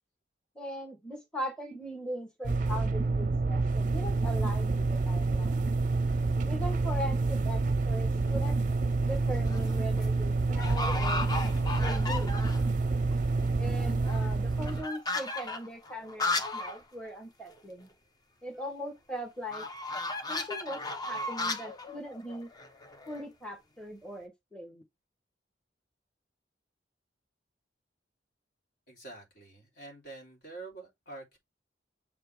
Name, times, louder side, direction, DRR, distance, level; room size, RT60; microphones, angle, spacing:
voice 1, 0.5-5.7 6.5-8.6 9.0-11.3 11.8-12.4 13.6-17.9 18.4-19.7 20.3-20.8 21.1-22.5 23.1-24.8, equal, 5° left, 1.2 m, -40 dB
sound 1, 2.4-14.8, right 3 dB, 45° right, 0.5 m, -28 dB
sound 2, 8.3-8.7 9.3-9.7 10.0-10.1 10.6-12.8 13.1-13.2 13.4-16.8 17.1-17.2 17.5-17.6 19.5-23.2, left 2 dB, 20° left, 0.8 m, -35 dB
voice 2, 28.9-31.4, right 3 dB, 60° left, 3.4 m, -46 dB
6.8 x 4.4 x 3.3 m
head